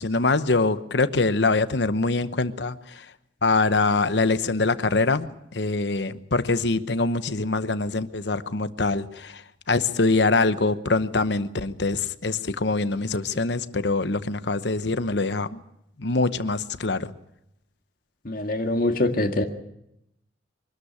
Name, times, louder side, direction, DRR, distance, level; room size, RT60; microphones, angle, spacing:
voice 1, 0.0-3.1 3.4-5.3 5.5-9.4 9.7-15.6 16.0-17.1, left 3 dB, 70° left, 13 dB, 1.0 m, -24 dB
voice 2, 18.3-19.4, left 1 dB, 50° left, 3 dB, 1.9 m, -24 dB
24.0 x 13.0 x 9.7 m, 0.80 s
head